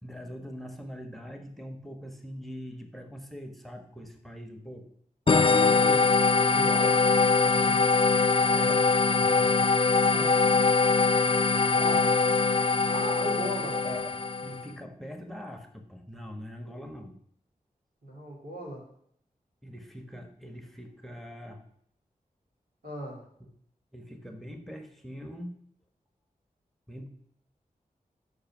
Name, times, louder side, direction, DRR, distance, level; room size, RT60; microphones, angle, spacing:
voice 1, 0.0-4.9 8.5-9.7 13.4-17.2 19.6-21.6 23.4-23.5 23.9-25.5 26.9-27.1, equal, ahead, 6 dB, 1.2 m, -43 dB
sound 1, 5.3-14.6, left 4 dB, 35° left, 0.4 m, -23 dB
voice 2, 5.3-6.1 6.5-7.0 7.4-7.8 10.1-10.5 11.7-12.2 12.8-13.7 18.0-18.8 22.8-23.2, equal, 80° right, -3 dB, 3.2 m, -38 dB
6.6 x 5.1 x 6.1 m, 0.66 s
cardioid pair, 45°, 15 cm